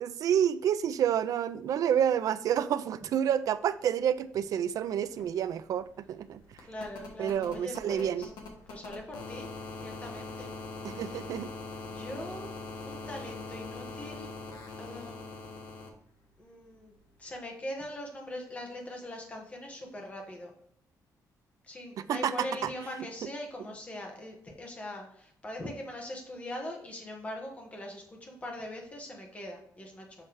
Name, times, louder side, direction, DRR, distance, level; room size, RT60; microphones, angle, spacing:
voice 1, 0.0-6.4 7.2-8.3 10.8-11.5 22.1-22.5, right 9 dB, 60° right, 13 dB, 0.4 m, -29 dB
sound 1, 4.7-4.8 5.0-15.9 17.3-17.4, left 3 dB, 85° left, 1.4 m, -43 dB
voice 2, 6.6-8.3 8.7-9.5 9.8-10.5 10.8-11.3 11.8-12.5 12.8-14.3 14.8-15.6 16.4-20.5 21.6-30.2, left 1 dB, 20° left, 1 dB, 1.3 m, -42 dB
7.0 x 3.3 x 4.7 m, 0.69 s
cardioid pair, 175°, 7 cm